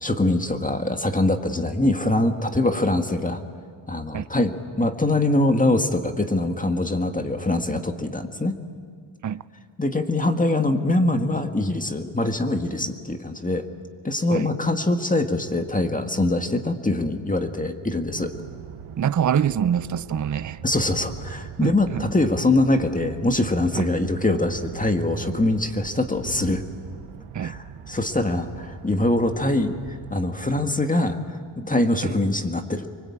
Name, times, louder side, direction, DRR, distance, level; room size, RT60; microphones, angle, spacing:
voice 1, 0.0-3.4 3.9-8.6 9.8-13.7 14.0-18.3 20.6-26.6 27.4-32.9, left 2 dB, 15° left, 1.7 m, -23 dB
sound 1, 18.1-30.2, right 9 dB, 85° right, 1.3 m, -41 dB
voice 2, 19.0-20.6 21.6-22.1 23.7-23.9 27.3-27.6 32.0-32.1, right 9 dB, 35° right, 0.7 m, -25 dB
26.5 x 23.5 x 8.7 m
cardioid pair, 85°, 49 cm